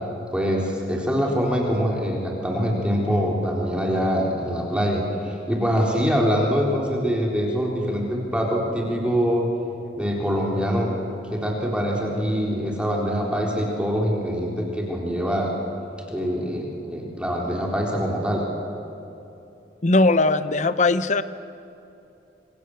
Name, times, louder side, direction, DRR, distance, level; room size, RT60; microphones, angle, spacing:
voice 1, 0.3-9.5 10.0-10.9 11.3-15.5 16.1-18.4, equal, 5° right, -2 dB, 3.9 m, -24 dB
voice 2, 19.8-21.2, left 2 dB, 40° left, 13 dB, 0.9 m, -19 dB
27.5 x 24.5 x 8.0 m, 2.8 s
head